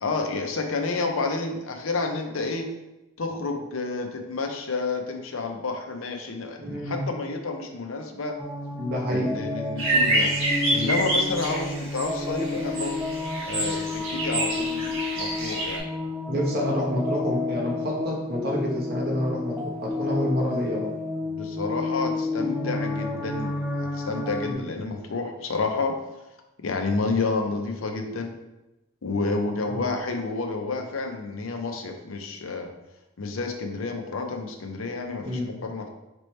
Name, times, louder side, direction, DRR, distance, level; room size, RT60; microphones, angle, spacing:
voice 1, 0.0-2.7 3.2-8.4 9.1-10.3 10.7-13.0 13.4-14.9 15.2-15.9 21.3-25.9 26.6-28.3 29.0-32.7 33.2-35.9, left 3 dB, 80° left, 4 dB, 0.6 m, -30 dB
voice 2, 6.6-7.0 8.8-9.3 16.3-20.9 24.4-24.6 29.7-29.9 35.2-35.5, equal, 45° right, -2 dB, 1.1 m, -28 dB
sound 1, 8.4-24.5, left 2 dB, 5° right, 0.4 m, -31 dB
sound 2, 9.8-15.8, right 1 dB, 75° right, 1.2 m, -27 dB
5.2 x 3.0 x 3.2 m, 0.98 s
head